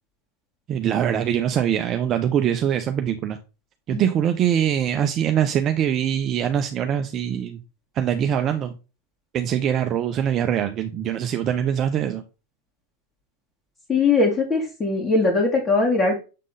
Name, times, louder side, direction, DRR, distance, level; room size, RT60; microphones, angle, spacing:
voice 1, 0.7-3.4 3.9-7.6 7.9-8.7 9.3-12.2, right 9 dB, 40° right, 0.6 m, -23 dB
voice 2, 13.9-16.1, left 3 dB, 25° left, 2.1 m, -20 dB
7.5 x 3.7 x 3.9 m
hypercardioid pair, 100°, 0 cm